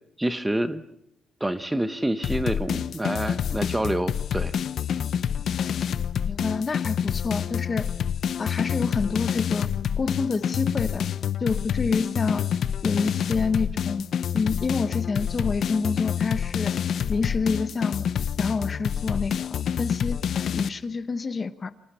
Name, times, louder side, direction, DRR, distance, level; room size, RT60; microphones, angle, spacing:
voice 1, 0.2-0.8 1.4-4.5, right 1 dB, 5° right, 11 dB, 0.9 m, -27 dB
sound 1, 2.2-20.7, left 8 dB, 55° left, 0.9 m, -27 dB
voice 2, 6.2-7.9 8.4-9.7 10.0-11.1 11.4-12.5 12.8-14.0 14.3-16.7 17.1-18.0 18.4-20.2 20.5-21.7, left 4 dB, 25° left, 12 dB, 1.0 m, -28 dB
29.5 x 26.5 x 5.7 m, 0.80 s
cardioid pair, 175°, 0 cm